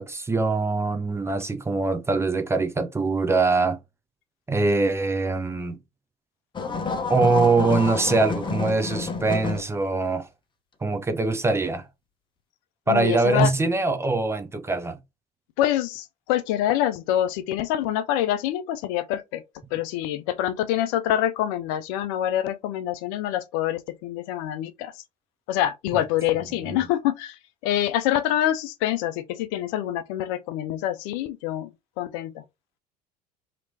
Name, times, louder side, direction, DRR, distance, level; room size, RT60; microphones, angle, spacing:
voice 1, 0.0-3.8 4.5-5.8 7.1-10.3 10.8-11.9 12.9-15.0 26.6-26.8, right 3 dB, 10° right, 0.6 m, -23 dB
sound 1, 6.6-9.6, left 4 dB, 20° left, 0.8 m, -29 dB
voice 2, 12.9-13.5 15.6-19.4 19.7-24.9 25.5-31.7 32.0-32.4, left 12 dB, 60° left, 0.5 m, -26 dB
2.9 x 2.9 x 2.7 m
figure-of-eight pair, 70°, 21 cm